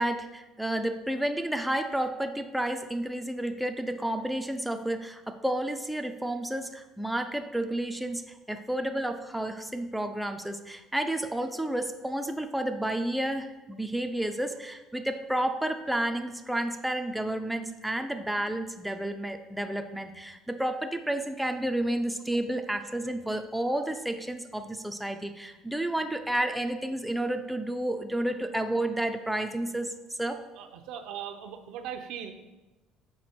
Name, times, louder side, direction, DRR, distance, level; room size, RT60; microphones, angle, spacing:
voice 1, 0.0-29.9 30.2-30.4, right 1 dB, 5° right, 6 dB, 0.4 m, -31 dB
voice 2, 30.6-32.3, right 9 dB, 75° right, 6 dB, 0.6 m, -39 dB
6.0 x 4.5 x 4.2 m, 1.1 s
cardioid pair, 130°, 0 cm